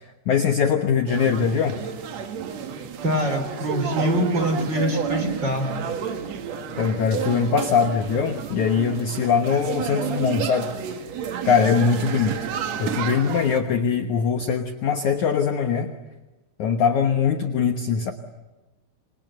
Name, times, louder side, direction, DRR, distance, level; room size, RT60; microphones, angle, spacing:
voice 1, 0.3-1.8 6.8-10.7 11.5-12.4 12.8-15.9 16.6-18.1, left 6 dB, 75° left, 6 dB, 1.7 m, -22 dB
sound 1, 1.1-13.6, right 7 dB, 65° right, 1.7 m, -31 dB
voice 2, 3.0-5.8, equal, 25° right, 7 dB, 3.6 m, -24 dB
28.0 x 26.5 x 7.9 m, 1.1 s
omnidirectional pair, 5.3 m